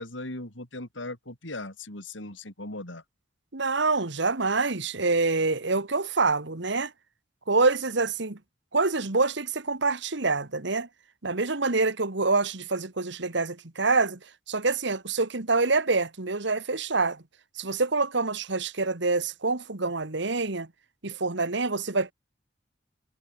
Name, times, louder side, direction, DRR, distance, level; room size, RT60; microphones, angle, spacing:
voice 1, 0.0-3.0, left 2 dB, 80° left, 5.3 m, -38 dB
voice 2, 3.5-6.9 7.5-8.4 8.7-10.9 11.2-14.2 14.5-17.2 17.6-20.7 21.0-22.1, right 3 dB, 70° right, 1.8 m, -26 dB
head